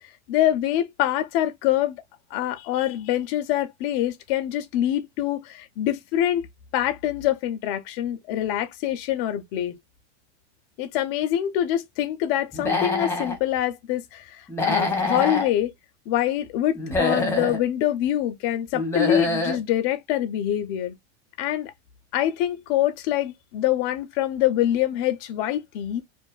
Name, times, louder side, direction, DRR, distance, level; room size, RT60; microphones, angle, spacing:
voice 1, 0.3-1.9 2.3-6.5 6.7-9.8 10.8-15.7 16.1-20.9 21.4-21.7 22.1-26.0, left 12 dB, 50° left, 0.5 m, -25 dB
Human voice / Animal, 12.5-13.4 14.5-15.5 16.7-17.6 18.7-19.6, left 2 dB, 5° left, 0.8 m, -25 dB
2.5 x 2.2 x 2.2 m
supercardioid pair, 130°, 35 cm